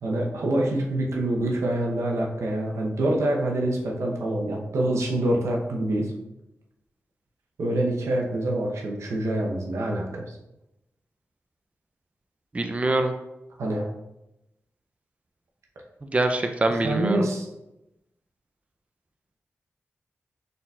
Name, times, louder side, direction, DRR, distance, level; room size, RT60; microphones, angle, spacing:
voice 1, 0.0-6.1 7.6-10.4 13.6-13.9 16.8-17.5, right 1 dB, 85° right, -1 dB, 0.7 m, -26 dB
voice 2, 12.5-13.1 16.1-17.2, right 2 dB, 25° right, 5 dB, 0.4 m, -24 dB
4.0 x 3.9 x 2.3 m, 0.90 s
cardioid pair, 55°, 5 cm